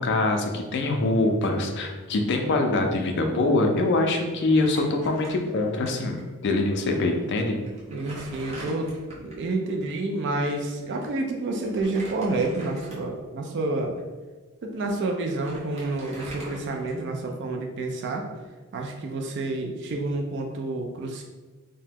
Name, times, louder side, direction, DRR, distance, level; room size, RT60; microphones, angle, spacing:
voice 1, 0.0-7.6, left 2 dB, 55° left, 4 dB, 0.4 m, -24 dB
Crumpling crinkling, 4.5-5.9 6.2-6.3 7.1-7.2 7.7-9.5 11.6-13.2 13.8-14.0 14.9-15.0 15.2-17.3, right 2 dB, 30° right, 0.8 m, -42 dB
voice 2, 7.9-8.9 9.2-13.9 14.6-18.3 18.7-21.2, right 2 dB, 50° right, 2 dB, 0.4 m, -29 dB
2.8 x 2.1 x 3.4 m, 1.3 s
head